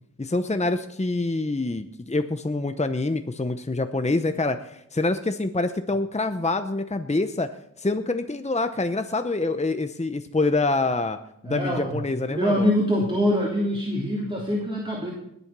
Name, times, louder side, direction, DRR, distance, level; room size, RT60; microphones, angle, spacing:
voice 1, 0.2-7.5 7.8-11.2 11.4-12.7, left 2 dB, 20° left, 9 dB, 0.7 m, -26 dB
voice 2, 11.4-15.1, equal, 15° right, -5 dB, 3.3 m, -24 dB
20.0 x 7.0 x 6.1 m, 0.77 s
wide cardioid pair, 40°, 33 cm